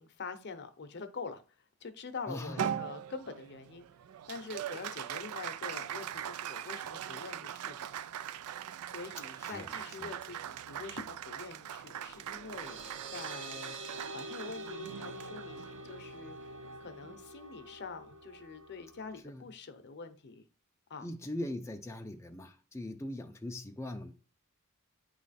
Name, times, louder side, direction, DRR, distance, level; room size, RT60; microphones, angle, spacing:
voice 1, 0.0-1.4 1.8-3.9 4.3-7.9 8.9-13.8 14.1-16.4 16.8-20.4 20.9-21.1, left 4 dB, 50° left, 0.7 m, -45 dB
voice 2, 2.3-2.7 9.4-9.7 10.0-10.1 19.2-19.4 21.0-24.1, left 1 dB, 10° left, 0.4 m, -40 dB
Applause, 2.6-17.2, right 9 dB, 85° right, 0.4 m, -41 dB
sound 1, 12.0-19.2, right 2 dB, 55° right, 0.9 m, -46 dB
9.2 x 3.2 x 4.1 m
head